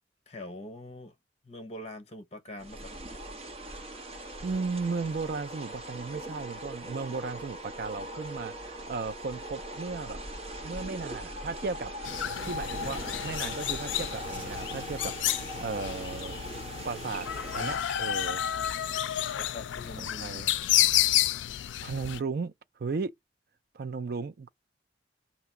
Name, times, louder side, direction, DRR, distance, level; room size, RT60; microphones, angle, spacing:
voice 1, 0.3-1.1 1.4-2.9 19.4-20.7, left 1 dB, 35° left, 1.1 m, -43 dB
sound 1, 2.6-17.8, right 1 dB, 35° right, 1.5 m, -40 dB
sound 2, 3.5-19.6, right 1 dB, 10° right, 1.6 m, -56 dB
voice 2, 4.4-10.2 10.6-11.9 12.4-16.4 16.8-17.3 17.5-18.4 20.0-20.5 21.8-22.5 22.8-23.1 23.7-24.5, right 4 dB, 55° right, 0.4 m, -35 dB
sound 3, 12.0-22.2, left 12 dB, 85° left, 0.4 m, -30 dB
6.7 x 2.9 x 5.8 m
head